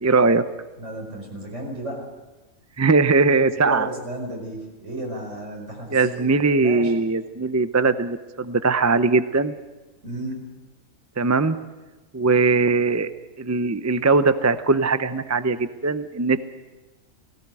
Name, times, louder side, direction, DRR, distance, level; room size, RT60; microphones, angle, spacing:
voice 1, 0.0-0.4 2.8-3.9 5.9-9.5 11.2-11.6 12.1-13.1 13.4-16.4, right 3 dB, 20° right, 12 dB, 0.4 m, -20 dB
voice 2, 0.8-2.1 3.6-6.3 6.6-6.9 10.0-10.4, right 1 dB, 65° right, 0 dB, 5.2 m, -33 dB
18.5 x 17.5 x 9.0 m, 1.1 s
omnidirectional pair, 1.4 m